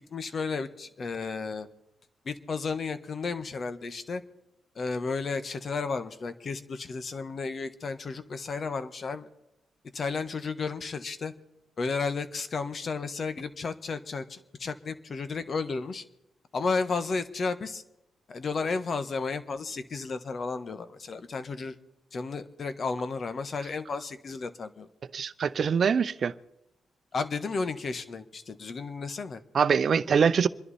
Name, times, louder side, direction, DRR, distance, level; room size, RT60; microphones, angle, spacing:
voice 1, 0.1-1.7 2.2-4.2 4.8-9.3 9.9-11.3 11.8-16.0 16.5-17.8 18.3-21.8 22.1-24.9 27.1-29.4, left 4 dB, 50° left, 1.3 m, -33 dB
voice 2, 25.1-26.3 29.5-30.5, right 6 dB, 55° right, 0.6 m, -23 dB
26.5 x 11.0 x 4.3 m
supercardioid pair, 65°, 0 cm